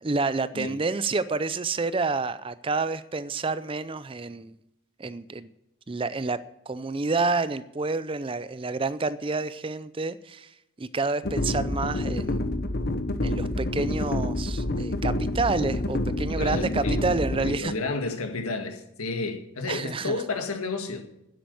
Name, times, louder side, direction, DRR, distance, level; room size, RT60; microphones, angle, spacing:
voice 1, 0.0-4.6 5.0-5.5 5.9-6.4 6.7-12.4 13.2-17.7 19.7-20.2, right 3 dB, 25° right, 15 dB, 0.4 m, -29 dB
sound 1, 11.2-17.6, left 1 dB, 45° left, 1.0 m, -28 dB
voice 2, 16.4-17.0 17.4-21.1, left 3 dB, 85° left, 5 dB, 1.8 m, -31 dB
10.5 x 7.9 x 8.3 m, 0.84 s
head